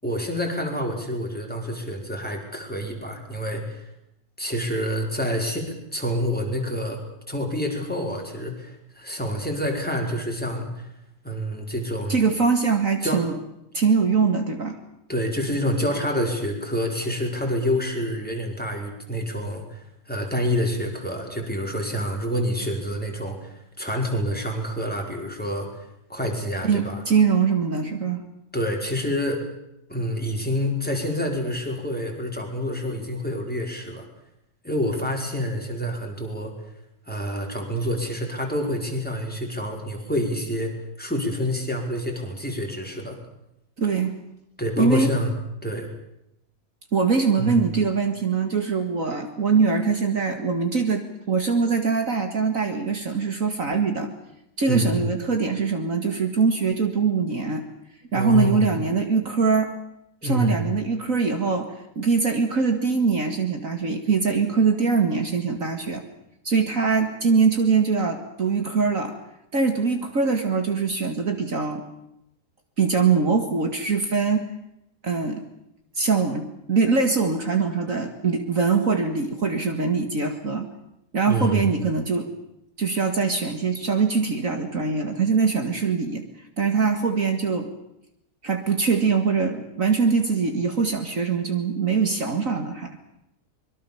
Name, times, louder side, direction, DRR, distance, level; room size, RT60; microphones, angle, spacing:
voice 1, 0.0-3.8 4.4-7.0 7.3-10.9 11.2-12.2 13.0-13.2 15.1-27.0 28.5-29.4 29.9-34.1 34.6-36.5 37.1-40.7 41.0-43.2 44.6-45.3 45.6-45.9 47.4-47.7 54.7-55.1 58.1-58.6 60.2-60.6 81.3-81.7, equal, 5° left, 1 dB, 5.0 m, -27 dB
voice 2, 12.1-13.3 13.7-14.8 26.6-28.2 43.8-44.1 44.8-45.1 46.9-54.1 54.6-57.6 58.1-59.7 60.2-66.0 66.4-69.1 69.5-71.8 72.8-74.5 75.0-75.4 76.0-80.7 81.1-82.3 82.8-86.2 86.6-87.7 88.4-92.9, right 5 dB, 55° right, 6 dB, 2.3 m, -23 dB
25.5 x 22.5 x 7.1 m, 0.81 s
omnidirectional pair, 1.7 m